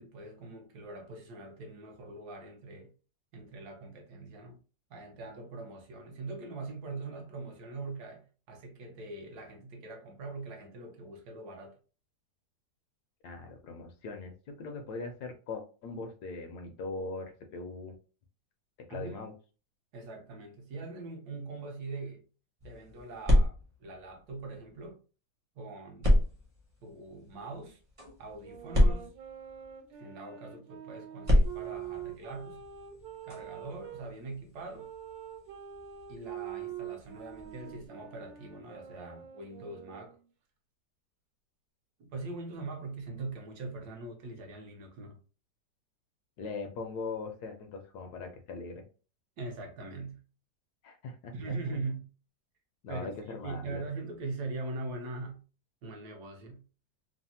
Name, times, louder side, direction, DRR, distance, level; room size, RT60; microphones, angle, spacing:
voice 1, 0.0-2.9 3.3-4.6 4.9-11.8 18.9-19.3 19.9-22.2 22.6-23.5 23.8-25.0 25.6-26.2 26.8-27.8 28.2-29.1 30.0-32.6 33.3-34.9 36.1-40.2 42.0-45.2 49.4-50.2 51.3-52.1 52.9-55.4 55.8-56.6, right 3 dB, 70° right, 1.1 m, -42 dB
voice 2, 13.2-14.3 14.6-18.0 18.9-19.3 46.4-48.8 50.8-51.3 52.8-53.8, left 3 dB, 75° left, 1.0 m, -40 dB
sound 1, 22.6-24.9 26.0-30.0 31.2-37.9, left 1 dB, 30° right, 0.6 m, -31 dB
sound 2, 28.4-34.0 34.7-40.3, right 10 dB, 85° right, 1.3 m, -45 dB
3.2 x 2.0 x 2.7 m
omnidirectional pair, 1.9 m